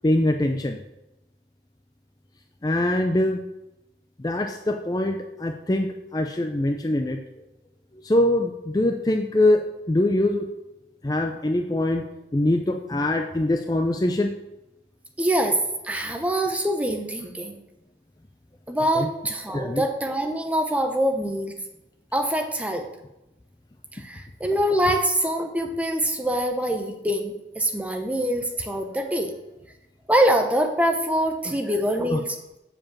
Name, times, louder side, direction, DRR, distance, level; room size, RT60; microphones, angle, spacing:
voice 1, 0.0-0.8 2.6-3.4 4.2-7.2 8.0-10.5 11.0-12.0 12.3-14.3 18.9-19.1 19.5-19.8 32.1-32.2, left 1 dB, 20° left, 4 dB, 0.4 m, -23 dB
voice 2, 15.2-15.6 15.8-17.6 18.7-21.5 22.1-22.9 23.9-29.3 30.1-32.4, right 1 dB, 10° right, 4 dB, 0.8 m, -24 dB
7.5 x 4.9 x 7.1 m, 0.96 s
head